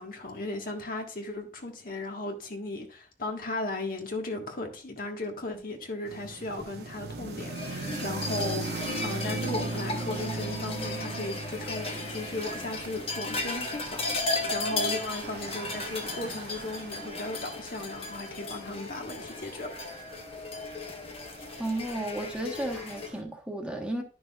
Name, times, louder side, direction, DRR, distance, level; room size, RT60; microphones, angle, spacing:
voice 1, 0.0-19.7, left 2 dB, 55° left, 1.5 m, -36 dB
sound 1, 6.1-23.2, right 3 dB, 65° right, 0.8 m, -40 dB
sound 2, 7.4-23.1, left 2 dB, 35° left, 1.1 m, -36 dB
voice 2, 21.6-24.0, right 1 dB, 5° right, 1.2 m, -33 dB
11.0 x 6.2 x 2.4 m
head